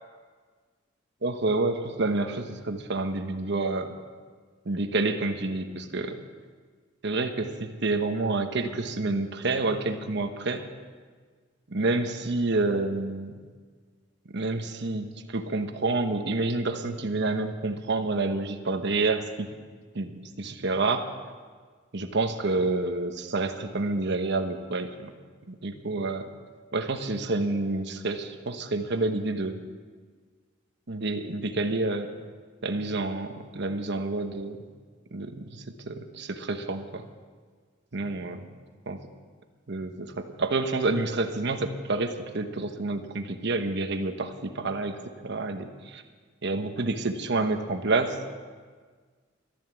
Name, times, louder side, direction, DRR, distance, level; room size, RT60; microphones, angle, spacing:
voice 1, 1.2-3.9 4.6-6.2 7.0-10.6 11.7-13.4 14.3-19.5 19.9-21.1 21.9-25.1 25.5-26.3 26.7-29.6 30.9-32.1 32.6-34.6 35.1-37.0 37.9-38.4 38.9-39.0 39.7-46.0 46.4-48.2, right 3 dB, 60° right, 7 dB, 1.1 m, -28 dB
13.0 x 11.0 x 7.3 m, 1.5 s
head